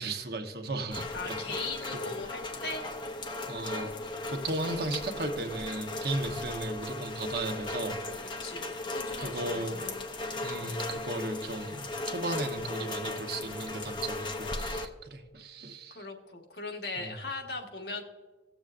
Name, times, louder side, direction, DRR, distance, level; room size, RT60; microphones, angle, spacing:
voice 1, 0.0-1.7 3.5-8.0 9.2-9.9 10.4-16.1 17.0-17.1, right 2 dB, 60° right, 5 dB, 1.0 m, -36 dB
Rain, 0.9-14.9, left 2 dB, 25° left, 0.6 m, -37 dB
voice 2, 1.1-2.9 4.2-4.3 8.4-10.8 15.9-18.0, left 3 dB, 65° left, 2 dB, 1.3 m, -39 dB
18.0 x 7.1 x 2.5 m, 1.3 s
head